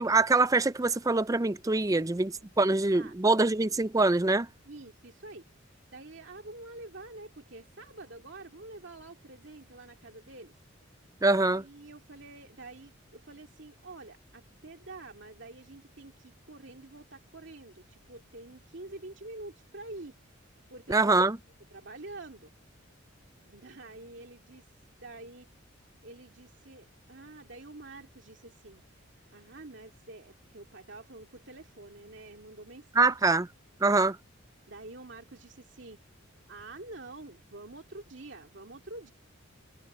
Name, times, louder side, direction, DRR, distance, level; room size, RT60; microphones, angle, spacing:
voice 1, 0.0-4.5 11.2-11.6 20.9-21.4 33.0-33.5 33.8-34.2, right 3 dB, 15° right, 0.5 m, -24 dB
voice 2, 1.9-3.1 4.6-5.5 5.9-10.5 11.5-20.2 20.7-21.2 21.7-22.5 23.4-24.6 24.9-25.5 26.0-28.8 29.3-33.1 34.7-36.0 36.5-39.1, right 2 dB, 60° right, 2.5 m, -47 dB
head